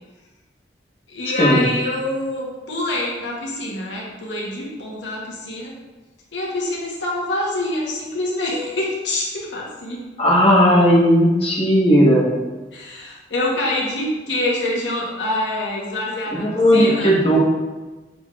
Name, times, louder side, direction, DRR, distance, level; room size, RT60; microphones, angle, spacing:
voice 1, 1.1-5.7 6.3-10.0 12.7-17.1, left 1 dB, 90° left, -3 dB, 0.9 m, -25 dB
voice 2, 10.2-12.3 16.3-17.4, equal, 35° left, -5 dB, 1.0 m, -15 dB
6.1 x 3.2 x 2.3 m, 1.2 s
head